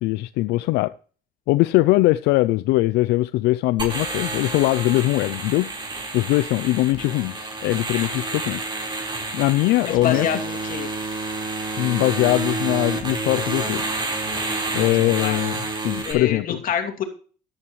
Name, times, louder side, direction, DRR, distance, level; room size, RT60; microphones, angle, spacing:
voice 1, 0.0-0.9 1.5-5.7 6.1-8.7 9.3-10.3 11.8-14.0 14.7-15.6 15.8-16.6, left 18 dB, 90° left, 0.4 m, -21 dB
sound 1, 3.8-16.1, right 2 dB, 25° right, 4.3 m, -29 dB
voice 2, 9.8-10.9 14.8-15.4 16.0-17.0, left 8 dB, 55° left, 2.6 m, -27 dB
13.5 x 11.5 x 3.1 m
cardioid pair, 110°, 17 cm